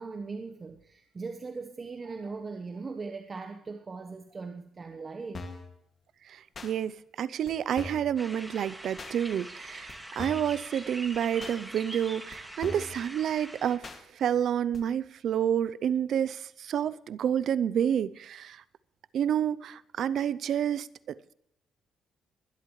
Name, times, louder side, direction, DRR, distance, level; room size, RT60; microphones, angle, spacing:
voice 1, 0.0-5.5, right 4 dB, 35° right, 1.1 m, -39 dB
sound 1, 5.3-5.7 6.5-6.7 7.5-7.6 7.8-8.1 9.0-9.1 9.9-10.0 10.2-10.5 11.4-11.6 12.3-12.4 12.6-13.0 13.8-14.0 14.7-14.8, left 3 dB, 45° left, 2.2 m, -40 dB
voice 2, 6.3-18.6 19.1-21.3, right 9 dB, 70° right, 0.6 m, -29 dB
sound 2, 8.2-13.8, right 1 dB, 10° right, 2.3 m, -44 dB
22.0 x 12.0 x 3.2 m
cardioid pair, 90°, 0 cm